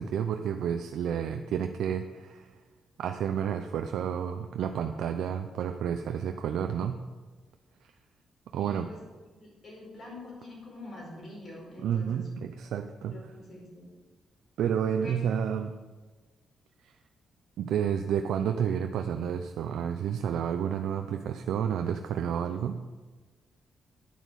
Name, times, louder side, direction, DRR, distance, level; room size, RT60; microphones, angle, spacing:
voice 1, 0.0-2.5 3.0-7.0 8.5-8.9 11.8-13.2 14.6-15.7 16.8-16.9 17.6-22.8, right 8 dB, 85° right, 6 dB, 0.6 m, -30 dB
voice 2, 8.6-9.0 9.3-12.3 13.0-13.9 15.0-15.1, left 2 dB, 45° left, -2 dB, 4.6 m, -45 dB
10.5 x 9.1 x 6.4 m, 1.3 s
cardioid pair, 150°, 0 cm